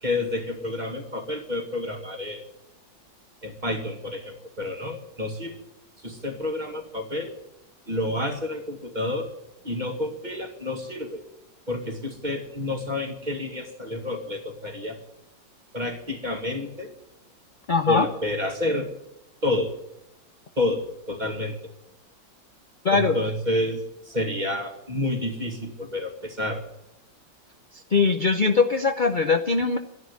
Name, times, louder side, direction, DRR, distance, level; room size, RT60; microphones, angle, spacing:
voice 1, 0.0-2.4 3.4-5.6 6.0-7.4 7.9-9.3 9.6-11.2 11.7-15.0 15.7-16.9 17.9-18.9 19.4-19.8 20.6-21.7 22.9-26.6, left 1 dB, 25° right, 4 dB, 2.2 m, -29 dB
voice 2, 17.7-18.1 22.8-23.2 27.9-29.8, left 4 dB, 55° left, 6 dB, 0.5 m, -21 dB
13.0 x 11.0 x 9.6 m, 0.92 s
omnidirectional pair, 2.0 m